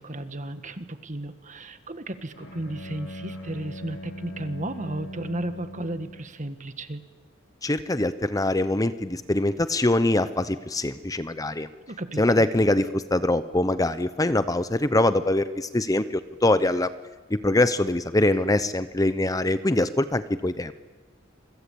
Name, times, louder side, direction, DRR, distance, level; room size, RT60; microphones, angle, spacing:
voice 1, 0.0-7.0 11.9-12.5, right 1 dB, 40° right, 10 dB, 1.6 m, -34 dB
Bowed string instrument, 2.3-6.4, equal, 85° left, 6.4 m, -40 dB
voice 2, 7.6-11.7 12.2-16.9 17.3-20.7, left 1 dB, 20° left, 12 dB, 0.8 m, -23 dB
27.0 x 24.5 x 8.6 m, 1.3 s
head